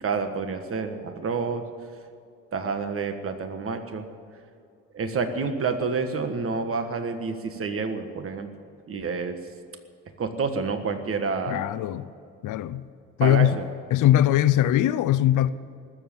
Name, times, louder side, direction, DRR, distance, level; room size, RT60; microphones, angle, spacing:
voice 1, 0.0-1.6 2.5-4.1 4.9-8.5 8.9-9.4 10.2-11.7 13.2-13.6, right 4 dB, 45° right, 1.5 m, -28 dB
voice 2, 11.5-12.1 12.4-12.8 13.2-13.5 13.9-15.5, left 12 dB, 80° left, 0.7 m, -21 dB
20.0 x 7.6 x 9.0 m
cardioid pair, 90°, 30 cm